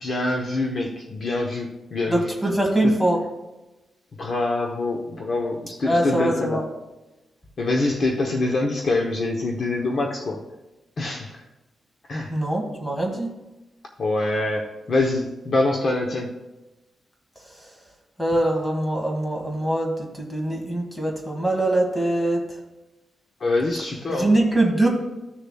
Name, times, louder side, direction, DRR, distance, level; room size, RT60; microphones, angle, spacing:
voice 1, 0.0-2.3 2.8-3.0 4.2-6.7 7.6-10.4 11.0-11.4 12.1-12.4 14.0-16.4 23.4-24.4, left 2 dB, 40° left, 1 dB, 0.8 m, -25 dB
voice 2, 2.1-3.2 5.8-6.6 12.3-13.3 18.2-22.4 24.1-24.9, right 1 dB, 5° left, 1 dB, 1.5 m, -23 dB
14.0 x 6.7 x 2.3 m, 1.0 s
wide cardioid pair, 170°, 0 cm